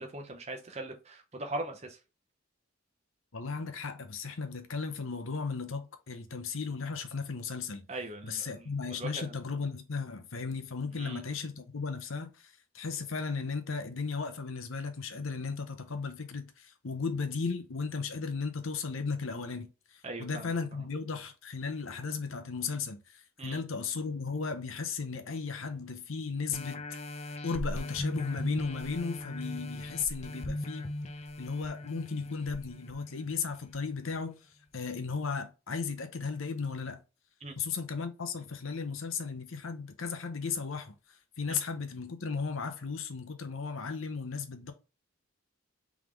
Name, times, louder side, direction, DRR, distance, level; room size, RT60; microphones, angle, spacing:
voice 1, 0.0-2.0 7.9-9.3 10.9-11.2 20.0-20.6 23.4-23.6 37.4-37.6 41.5-41.6, right 2 dB, 30° right, 0.8 m, -40 dB
voice 2, 3.3-7.9 8.2-26.8 27.4-30.9 31.4-34.4 34.7-37.0 37.6-40.9 41.4-44.7, left 5 dB, 75° left, 0.8 m, -35 dB
sound 1, 26.5-33.7 34.2-34.3, left 1 dB, 30° left, 0.5 m, -38 dB
3.7 x 3.6 x 3.1 m
head